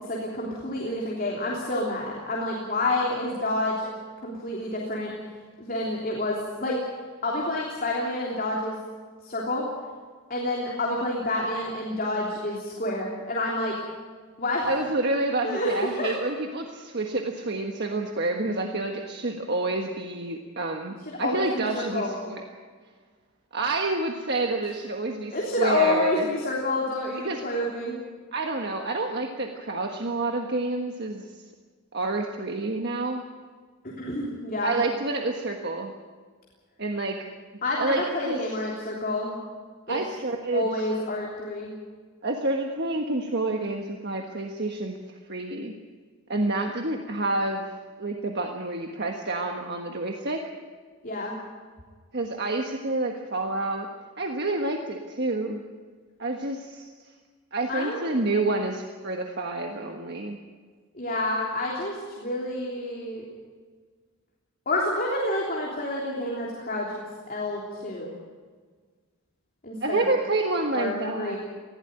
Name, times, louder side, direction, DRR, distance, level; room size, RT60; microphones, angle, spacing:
voice 1, 0.1-3.9 4.2-5.1 5.6-6.8 7.2-8.8 9.2-9.7 10.3-13.7 14.4-14.7 15.4-16.1 21.2-22.2 25.3-27.9 34.0-34.8 37.6-39.4 39.9-40.0 40.5-41.7 51.0-51.3 57.7-58.0 60.9-63.2 64.6-66.9 67.3-68.1 69.6-70.0 70.7-71.4, left 1 dB, 40° left, -3 dB, 3.4 m, -28 dB
voice 2, 14.6-22.4 23.5-26.3 27.1-27.4 28.3-31.4 31.9-33.2 34.6-35.9 36.8-37.3 37.8-38.4 39.9-40.9 42.2-45.7 46.3-50.4 52.1-53.9 54.2-55.6 56.2-57.1 57.5-60.4 69.8-71.4, right 2 dB, 50° right, 3 dB, 1.4 m, -28 dB
20.0 x 16.0 x 9.1 m, 1.5 s
head